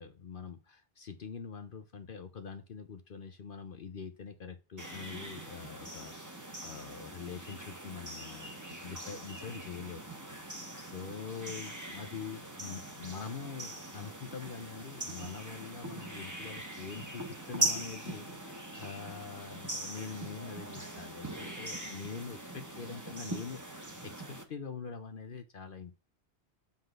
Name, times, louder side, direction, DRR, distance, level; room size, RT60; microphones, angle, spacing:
voice 1, 0.0-10.1 10.4-26.0, left 6 dB, 55° left, 9 dB, 0.9 m, -44 dB
sound 1, 4.8-24.4, right 2 dB, 15° right, 1.3 m, -41 dB
7.3 x 3.9 x 6.5 m, 0.32 s
omnidirectional pair, 1.1 m